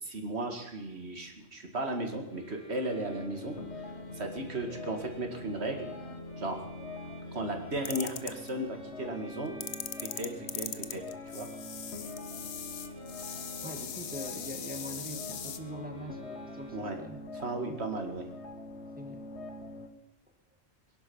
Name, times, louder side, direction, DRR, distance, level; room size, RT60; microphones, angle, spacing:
voice 1, 0.0-3.6 4.1-5.9 6.4-6.6 7.3-9.5 10.0-11.5 16.7-17.0 17.4-18.3, right 1 dB, 75° right, 4 dB, 2.4 m, -35 dB
sound 1, 2.3-17.3, equal, 50° left, 2.7 m, -53 dB
sound 2, 2.9-19.9, left 2 dB, 90° left, 1.7 m, -44 dB
sound 3, 7.9-8.5 9.6-15.6, left 7 dB, 65° left, 1.1 m, -40 dB
voice 2, 13.6-17.3 17.7-17.8 19.0-19.2, equal, 10° right, 4 dB, 1.7 m, -43 dB
22.5 x 11.0 x 5.5 m, 0.91 s
omnidirectional pair, 1.1 m